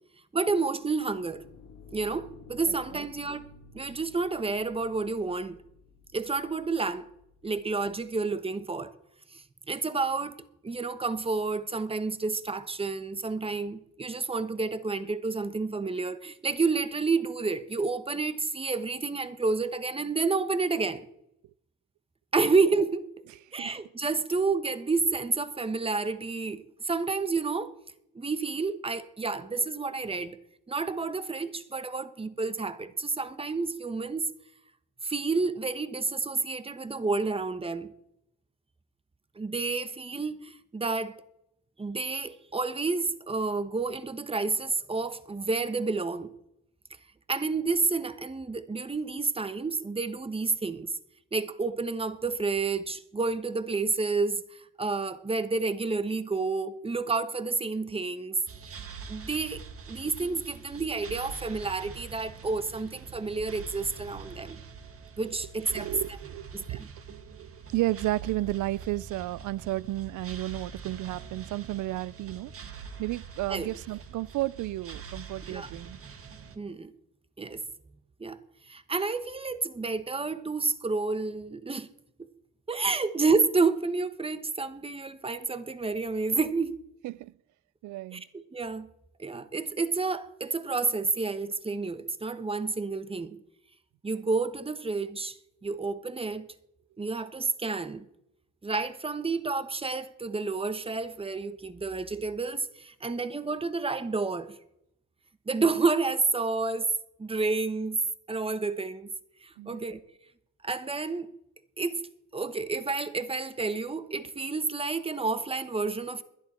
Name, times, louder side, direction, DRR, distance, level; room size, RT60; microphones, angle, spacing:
voice 1, 0.3-1.4 1.9-3.5 3.7-5.6 6.1-7.1 7.4-8.9 9.3-10.4 10.6-21.1 22.3-23.1 23.5-27.7 28.1-30.4 30.7-34.3 35.0-37.9 39.4-41.2 41.8-46.3 47.3-50.9 51.3-58.4 59.1-59.6 59.9-64.6 65.2-65.9 66.5-66.9 73.5-73.7 75.5-75.7 76.6-76.9 77.4-77.6 78.2-78.4 78.7-81.9 82.7-86.8 88.1-88.9 89.2-93.4 94.0-96.5 97.0-98.1 98.6-104.6 105.5-106.9 107.2-108.0 108.3-109.1 109.4-110.0 110.6-111.3 111.8-112.0 112.3-116.2, right 4 dB, 20° right, 1.1 m, -30 dB
sound 1, 0.9-8.2, left 5 dB, 65° left, 2.0 m, -54 dB
sound 2, 58.5-76.6, right 5 dB, 50° right, 1.7 m, -44 dB
voice 2, 65.7-66.8 67.1-72.5 73.0-76.0 87.0-87.3 87.8-88.2 109.6-109.8, right 17 dB, 75° right, 0.5 m, -33 dB
21.0 x 11.5 x 4.3 m
cardioid pair, 90°, 30 cm